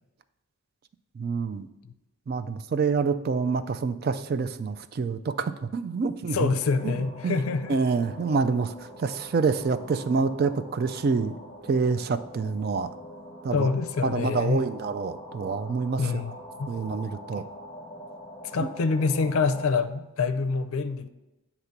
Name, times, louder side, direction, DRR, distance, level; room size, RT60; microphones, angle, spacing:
voice 1, 1.2-1.7 2.3-6.5 6.8-6.9 7.2-7.4 7.7-8.7 9.0-11.4 11.7-12.9 13.4-13.7 14.0-16.2 16.7-17.4 18.6-18.7, right 4 dB, 45° right, 12 dB, 0.3 m, -27 dB
voice 2, 6.3-7.8 13.5-14.6 16.0-16.3 16.6-16.7 17.3-17.4 18.5-21.1, left 4 dB, 80° left, 10 dB, 0.5 m, -26 dB
sound 1, 6.3-19.6, equal, 15° left, 1.0 m, -44 dB
8.0 x 2.9 x 5.8 m, 0.98 s
head